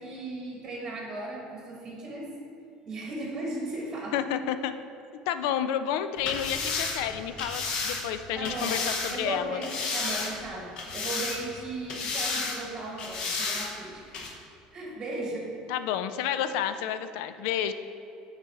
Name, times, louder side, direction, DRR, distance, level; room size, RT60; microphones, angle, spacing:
voice 1, 0.0-2.3 2.8-4.2 8.3-8.8 9.1-14.2 14.7-15.5, right 2 dB, 20° right, -2 dB, 1.2 m, -36 dB
voice 2, 4.1-4.7 5.3-9.6 15.7-17.7, left 9 dB, 85° left, 10 dB, 0.4 m, -30 dB
sound 1, 6.2-9.2 9.6-10.5 10.8-11.6 11.9-12.6 13.0-13.7 14.1-14.3, left 4 dB, 40° left, 1.1 m, -32 dB
9.4 x 4.1 x 4.1 m, 2.9 s
cardioid pair, 175°, 2 cm